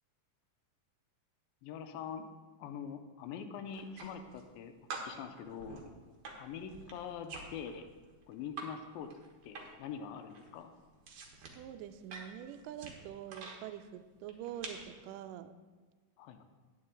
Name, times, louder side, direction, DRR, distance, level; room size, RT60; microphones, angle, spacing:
voice 1, 1.6-2.2 2.6-4.7 5.0-5.8 6.4-7.9 8.3-9.1 9.4-10.7 16.2-16.4, left 7 dB, 85° left, 7 dB, 2.4 m, -44 dB
sound 1, 3.7-4.6 4.9-8.7 9.0-9.9 10.2-13.6 14.2-14.9, right 4 dB, 65° right, 1.4 m, -47 dB
voice 2, 11.6-15.5, right 10 dB, 85° right, 9 dB, 1.9 m, -45 dB
9.9 x 9.7 x 3.8 m, 1.4 s
omnidirectional pair, 4.3 m